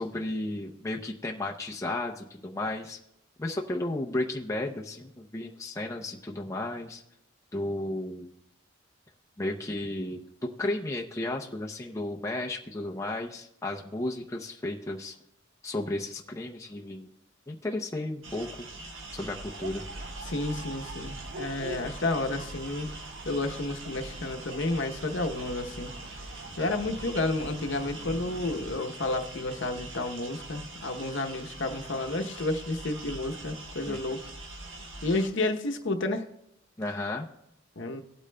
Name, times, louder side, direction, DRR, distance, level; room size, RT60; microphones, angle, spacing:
voice 1, 0.0-3.0 3.4-7.0 7.5-8.3 9.4-15.2 15.6-17.1 17.5-18.7 19.1-19.8 33.8-34.0 36.8-37.3, left 1 dB, 15° left, 0 dB, 0.5 m, -33 dB
sound 1, 18.2-35.3, right 2 dB, 65° right, 1.5 m, -44 dB
sound 2, 19.0-28.8, right 2 dB, 50° right, 0.6 m, -44 dB
voice 2, 20.2-22.9 23.2-25.9 26.6-34.2 35.0-36.2 37.8-38.0, left 2 dB, 65° left, 6 dB, 0.8 m, -31 dB
17.5 x 8.4 x 2.2 m, 0.77 s
head